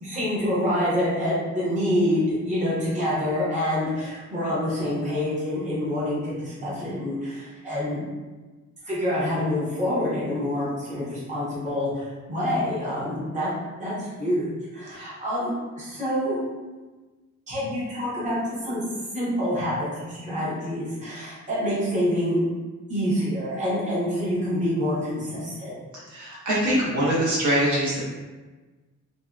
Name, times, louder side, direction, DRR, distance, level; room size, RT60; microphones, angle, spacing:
voice 1, 0.0-8.0 8.9-13.5 13.8-16.4 17.5-18.4 18.6-18.8 19.1-22.4 22.9-25.8, equal, 25° right, -9 dB, 0.8 m, -26 dB
voice 2, 26.1-28.0, right 1 dB, 70° right, -7 dB, 0.8 m, -23 dB
2.6 x 2.1 x 2.3 m, 1.3 s
wide cardioid pair, 160°, 30 cm